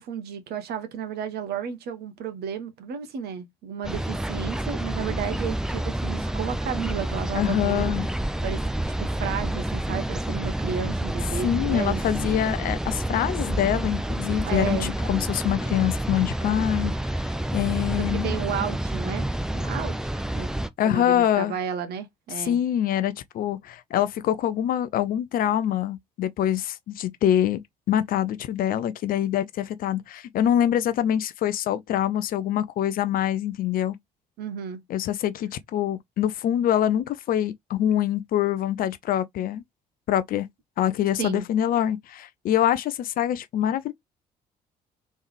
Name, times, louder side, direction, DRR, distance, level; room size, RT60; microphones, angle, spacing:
voice 1, 0.0-7.9 8.4-12.0 14.4-14.9 18.0-19.3 19.5-20.5 20.8-22.6 34.4-34.8 41.2-41.4, right 7 dB, 50° right, 1.0 m, -33 dB
sound 1, 3.8-20.7, right 1 dB, 5° right, 0.5 m, -28 dB
voice 2, 7.3-8.1 11.4-18.3 20.8-21.5 22.3-27.6 27.9-34.0 34.9-39.6 40.1-40.5 40.8-43.9, left 11 dB, 45° left, 0.5 m, -25 dB
3.5 x 3.2 x 3.0 m
figure-of-eight pair, 50°, 21 cm